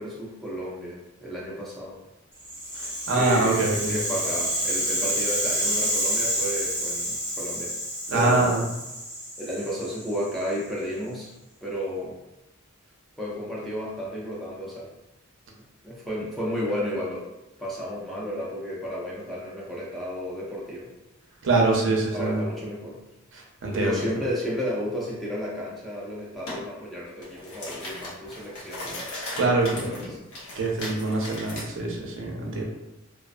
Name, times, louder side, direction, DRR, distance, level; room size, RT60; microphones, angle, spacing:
voice 1, 0.0-2.0 3.1-7.7 8.1-8.6 9.4-11.3 11.6-12.2 13.2-14.9 15.8-17.3 17.6-20.9 22.1-23.0 23.7-29.1 29.5-30.2, equal, ahead, -6 dB, 0.4 m, -32 dB
Rattle (instrument), 2.4-10.6, equal, 20° left, 1.0 m, -29 dB
voice 2, 2.8-3.9 8.1-8.6 21.4-22.4 23.3-24.0 29.3-30.1 30.6-32.6, right 3 dB, 60° right, -1 dB, 0.5 m, -24 dB
Coffee Machine - Select Pod, 26.5-26.6 27.1-31.7, left 1 dB, 60° left, 0.8 m, -37 dB
2.4 x 2.3 x 2.4 m, 0.97 s
head